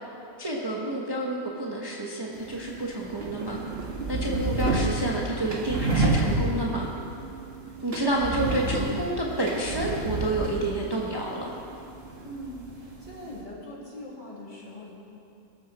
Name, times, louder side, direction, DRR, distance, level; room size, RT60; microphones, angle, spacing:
voice 1, 0.4-3.6 4.1-6.9 7.8-11.5, right 1 dB, 15° right, -3 dB, 1.4 m, -29 dB
sound 1, 2.3-13.4, right 2 dB, 45° right, 2.0 m, -30 dB
voice 2, 12.2-14.9, left 1 dB, 30° left, -6 dB, 3.5 m, -42 dB
23.0 x 13.0 x 4.4 m, 2.7 s
omnidirectional pair, 1.5 m